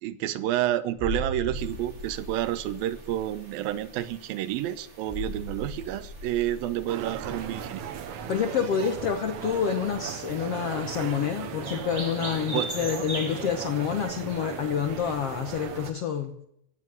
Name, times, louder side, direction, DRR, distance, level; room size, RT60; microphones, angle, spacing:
voice 1, 0.0-7.8 12.5-12.7, right 13 dB, 80° right, 2.4 m, -29 dB
sound 1, 1.0-9.4 9.6-9.8, equal, ahead, 3.6 m, -39 dB
sound 2, 1.5-15.8, right 3 dB, 35° right, 3.1 m, -44 dB
sound 3, 6.9-15.9, right 8 dB, 65° right, 2.2 m, -37 dB
voice 2, 8.3-16.4, left 7 dB, 75° left, 1.4 m, -28 dB
16.0 x 7.7 x 9.5 m
omnidirectional pair, 4.2 m